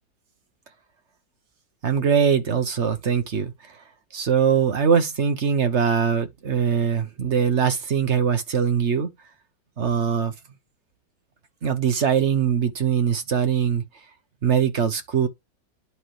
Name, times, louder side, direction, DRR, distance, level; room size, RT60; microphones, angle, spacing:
voice 1, 1.8-3.5 4.1-9.1 9.8-10.3 11.6-13.8 14.4-15.3, right 7 dB, 45° right, 1.2 m, -22 dB
11.5 x 3.9 x 3.2 m
omnidirectional pair, 2.0 m